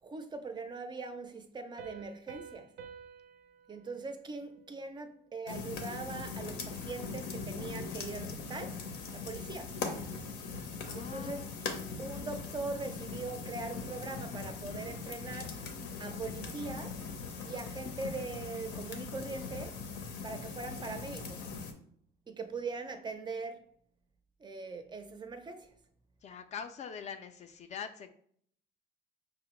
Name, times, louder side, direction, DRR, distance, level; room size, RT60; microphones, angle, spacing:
voice 1, 0.0-2.7 3.7-8.8 9.1-9.7 10.9-11.4 12.0-15.6 16.0-17.0 17.4-19.8 20.2-21.5 22.3-23.6 24.4-25.7, right 3 dB, 25° right, 0.4 m, -41 dB
Piano, 1.8-5.2, right 6 dB, 80° right, 0.5 m, -51 dB
sound 1, 5.5-21.7, left 4 dB, 90° left, 0.6 m, -40 dB
voice 2, 10.9-11.6 26.2-28.1, left 7 dB, 40° left, 0.4 m, -43 dB
5.7 x 2.0 x 3.0 m
cardioid pair, 110°, 17 cm